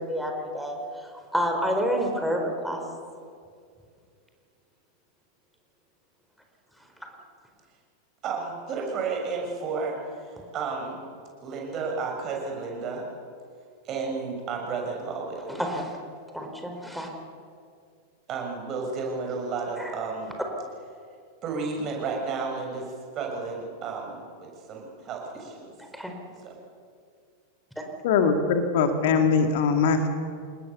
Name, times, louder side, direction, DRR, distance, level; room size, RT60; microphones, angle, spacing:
voice 1, 0.0-2.8 7.0-7.1 15.5-15.9 16.3-17.1 19.8-20.0 25.8-26.1 27.8-27.9, equal, ahead, 1 dB, 4.5 m, -29 dB
voice 2, 8.2-11.0 11.4-13.0 13.8-15.5 18.3-20.3 21.4-25.7 26.4-26.5, right 4 dB, 35° right, 1 dB, 6.6 m, -32 dB
voice 3, 28.0-30.1, left 5 dB, 50° left, 7 dB, 2.1 m, -22 dB
29.0 x 19.5 x 7.1 m, 2.3 s
figure-of-eight pair, 90°, 0 cm